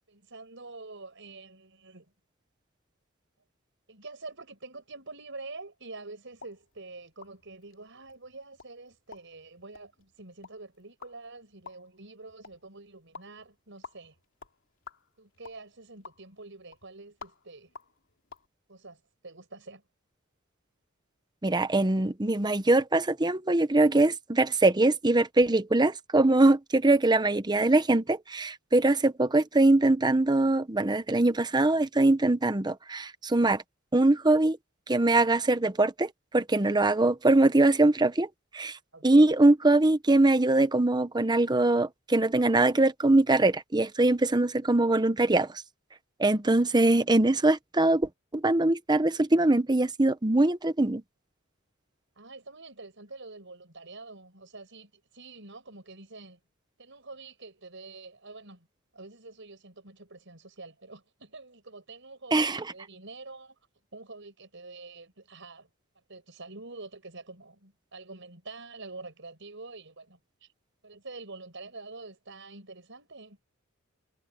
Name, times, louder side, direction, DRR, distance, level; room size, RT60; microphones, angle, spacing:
voice 1, 0.1-2.1 3.9-14.2 15.2-17.7 18.7-19.8 38.9-39.3 47.3-47.4 52.2-56.4 56.8-58.7 58.9-63.6 63.9-65.7 66.1-70.5 70.8-73.4, right 3 dB, 60° right, 7.3 m, -46 dB
sound 1, 6.3-18.5, left 5 dB, 65° left, 3.4 m, -53 dB
voice 2, 21.4-33.6 33.9-34.6 34.9-45.6 46.2-51.0 62.3-62.7, right 2 dB, 20° right, 0.9 m, -23 dB
head